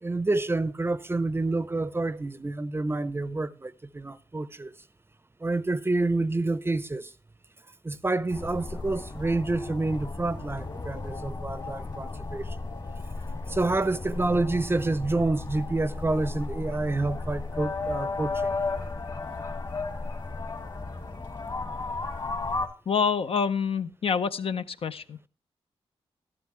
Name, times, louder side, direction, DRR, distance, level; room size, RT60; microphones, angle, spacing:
voice 1, 0.0-4.7 5.4-7.1 7.8-12.6 13.5-18.5 22.0-22.2, right 2 dB, 20° right, 0.6 m, -28 dB
sound 1, 8.3-22.7, left 3 dB, 45° left, 1.9 m, -34 dB
voice 2, 22.9-25.2, left 6 dB, 60° left, 0.6 m, -27 dB
12.5 x 12.0 x 3.1 m
cardioid pair, 70°, 11 cm